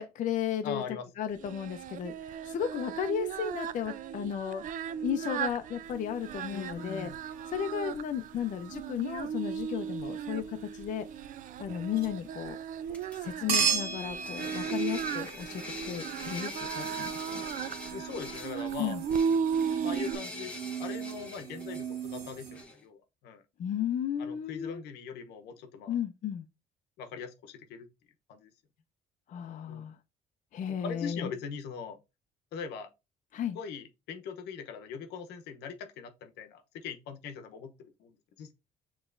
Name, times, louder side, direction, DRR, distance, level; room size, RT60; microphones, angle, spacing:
voice 1, 0.0-0.8 1.2-2.1 2.5-4.6 5.0-7.1 7.5-11.1 11.6-12.6 13.2-17.4 18.8-19.0 23.6-24.8 25.9-26.4 29.3-30.0 30.5-31.3 33.3-33.6, left 9 dB, 50° left, 0.5 m, -34 dB
voice 2, 0.6-1.1 6.5-7.2 17.9-19.0 19.8-20.5 20.8-23.4 24.2-26.0 27.0-27.9 28.3-28.5 29.7-29.9 30.7-32.0 32.5-32.9 33.5-38.5, left 6 dB, 85° left, 0.8 m, -41 dB
Singing, 1.4-20.2, right 7 dB, 50° right, 0.4 m, -36 dB
sound 1, 6.1-7.3 7.9-8.3 11.6-12.1 13.5-22.6, right 6 dB, 85° right, 1.4 m, -37 dB
sound 2, 12.9-13.6 13.9-22.8, left 2 dB, 5° left, 1.3 m, -44 dB
6.8 x 3.1 x 2.5 m
cardioid pair, 110°, 17 cm